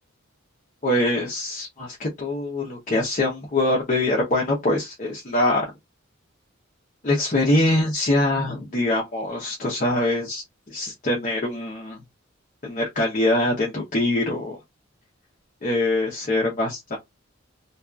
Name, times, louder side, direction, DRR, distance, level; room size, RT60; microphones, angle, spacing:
voice 1, 0.8-5.6 7.0-12.0 12.6-14.6 15.6-17.0, left 1 dB, 40° left, 0.7 m, -23 dB
2.7 x 2.3 x 2.3 m
head